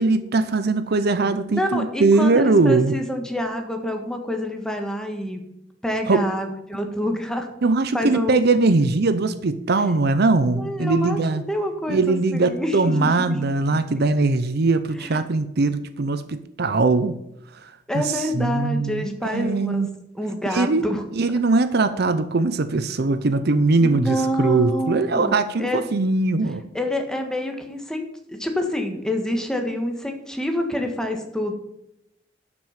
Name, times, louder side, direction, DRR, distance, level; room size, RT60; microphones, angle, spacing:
voice 1, 0.0-3.0 6.1-6.3 7.6-11.4 11.9-17.2 17.6-19.9 20.5-20.9 21.1-26.6, right 3 dB, 60° right, 0.6 m, -21 dB
voice 2, 1.5-5.4 5.8-7.5 7.9-8.4 10.5-11.2 11.5-13.8 15.0-15.2 17.9-19.9 20.1-21.0 23.8-25.8 26.7-31.5, left 1 dB, 5° left, 1.6 m, -27 dB
12.0 x 6.2 x 5.8 m
head